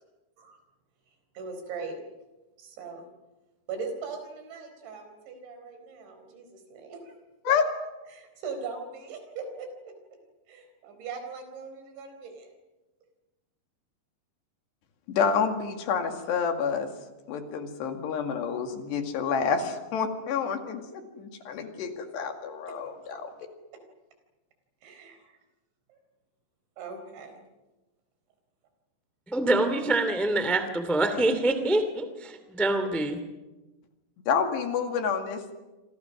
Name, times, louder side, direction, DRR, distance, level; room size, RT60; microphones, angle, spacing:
voice 1, 1.3-2.0 2.6-3.0 3.7-7.6 8.1-9.7 10.5-12.5 24.8-25.4 26.8-27.4, right 5 dB, 80° right, 6 dB, 6.6 m, -40 dB
voice 2, 15.1-16.9 17.3-23.3 34.3-35.5, left 6 dB, 70° left, 5 dB, 4.2 m, -28 dB
voice 3, 29.3-33.2, right 2 dB, ahead, 9 dB, 0.7 m, -25 dB
27.0 x 27.0 x 6.2 m, 1.1 s
omnidirectional pair, 5.2 m